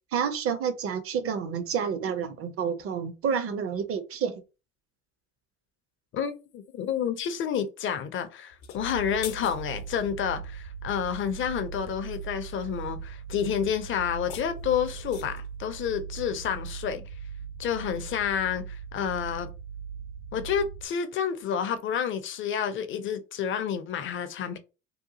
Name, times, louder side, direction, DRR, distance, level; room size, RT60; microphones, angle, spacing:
voice 1, 0.1-4.4, right 7 dB, 30° right, 0.4 m, -29 dB
voice 2, 6.1-17.0 17.6-19.5 20.3-24.6, left 8 dB, 30° left, 0.4 m, -29 dB
sound 1, 8.5-10.1 14.0-15.5, left 9 dB, 75° left, 0.7 m, -43 dB
sound 2, 8.8-20.9, right 7 dB, 75° right, 1.1 m, -39 dB
2.8 x 2.2 x 2.6 m
hypercardioid pair, 70°, 47 cm